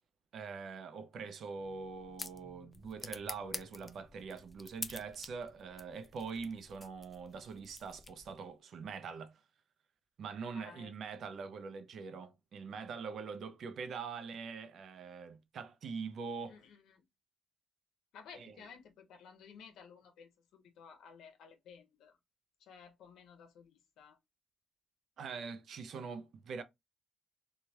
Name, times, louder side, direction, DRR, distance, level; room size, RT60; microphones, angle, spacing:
voice 1, 0.3-9.4 10.2-16.6 18.3-18.6 25.2-26.6, right 5 dB, 65° right, 0.5 m, -43 dB
sound 1, 1.6-8.5, left 3 dB, 20° left, 0.4 m, -49 dB
voice 2, 10.5-10.9 16.5-17.0 18.1-22.2 22.6-24.2, left 6 dB, 80° left, 0.8 m, -55 dB
3.1 x 2.3 x 2.8 m
cardioid pair, 90°, 0 cm